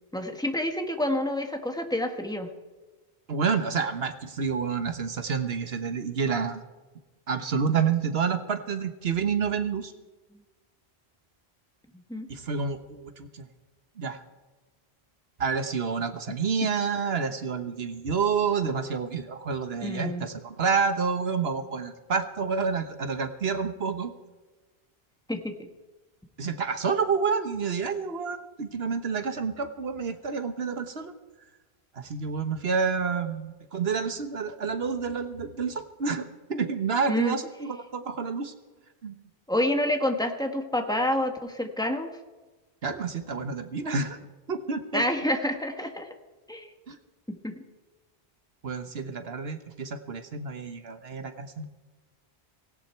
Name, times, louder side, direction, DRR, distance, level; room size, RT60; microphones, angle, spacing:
voice 1, 0.1-2.5 11.9-12.3 19.8-20.3 25.3-25.7 37.1-37.4 39.5-42.1 44.9-46.1 46.5-46.7 47.3-47.5, left 1 dB, 5° left, 4 dB, 1.6 m, -28 dB
voice 2, 3.3-6.6 7.3-9.9 12.3-13.5 14.0-14.2 15.4-24.1 26.4-31.1 31.9-36.2 36.5-38.5 39.0-39.2 42.8-44.2 44.5-45.0 46.9-47.0 48.6-51.7, right 5 dB, 75° right, 9 dB, 1.4 m, -29 dB
17.5 x 17.5 x 4.5 m, 1.2 s
omnidirectional pair, 1.0 m